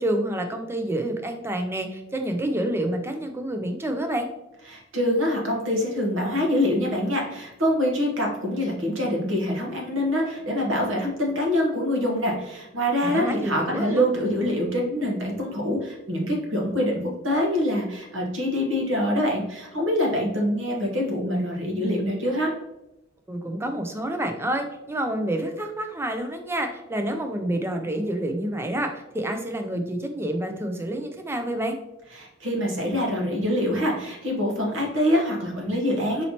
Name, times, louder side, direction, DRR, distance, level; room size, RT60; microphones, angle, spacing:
voice 1, 0.0-4.3 13.0-14.0 23.3-31.8, right 1 dB, 10° right, 5 dB, 0.3 m, -28 dB
voice 2, 4.7-22.5 32.1-36.2, equal, 75° right, -1 dB, 1.0 m, -25 dB
4.1 x 2.9 x 2.8 m, 0.90 s
head